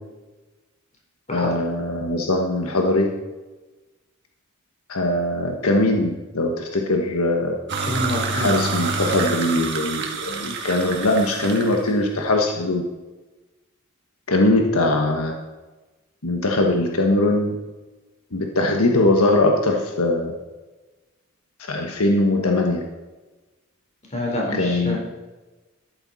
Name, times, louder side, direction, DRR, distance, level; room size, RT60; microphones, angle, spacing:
voice 1, 1.3-3.1 4.9-7.6 8.3-12.8 14.3-15.4 16.2-17.5 18.3-20.3 21.7-22.8 24.6-25.0, left 2 dB, 80° left, 2 dB, 1.3 m, -21 dB
sound 1, 7.7-11.9, right 4 dB, 50° right, 1.8 m, -27 dB
voice 2, 7.9-8.5 24.1-25.0, left 1 dB, 30° left, -2 dB, 4.0 m, -26 dB
13.5 x 11.5 x 4.1 m, 1.2 s
head